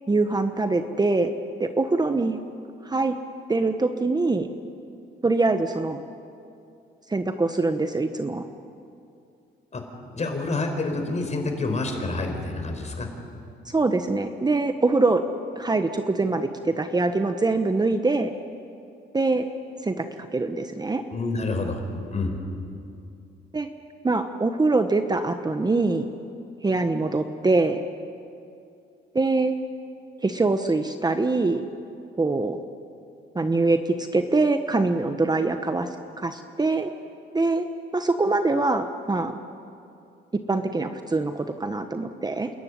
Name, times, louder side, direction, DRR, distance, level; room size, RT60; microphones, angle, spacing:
voice 1, 0.1-1.3 1.6-2.4 2.8-3.1 3.5-4.5 5.2-6.0 7.1-8.4 13.7-15.2 15.6-18.3 19.1-19.5 19.8-20.1 20.3-21.0 23.5-23.7 24.0-26.1 26.6-27.8 29.1-29.5 30.2-31.7 32.2-32.6 33.3-35.9 36.2-36.9 37.3-37.6 37.9-39.4 40.5-42.5, right 3 dB, 20° right, 8 dB, 1.1 m, -23 dB
voice 2, 10.1-13.1 21.1-21.8 22.1-22.3, left 3 dB, 35° left, 4 dB, 4.5 m, -28 dB
28.5 x 13.5 x 9.8 m, 2.6 s
cardioid pair, 90°, 20 cm